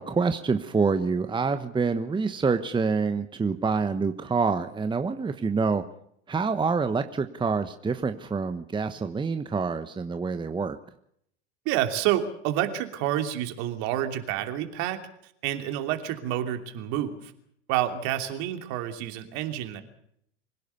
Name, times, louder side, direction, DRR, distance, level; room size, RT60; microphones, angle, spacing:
voice 1, 0.0-5.8 6.3-10.8, right 4 dB, 15° right, 9 dB, 1.1 m, -26 dB
voice 2, 11.6-15.0 15.4-17.3 17.7-19.8, right 12 dB, 55° right, 6 dB, 3.1 m, -28 dB
25.0 x 17.0 x 6.9 m, 0.71 s
hypercardioid pair, 85°, 35 cm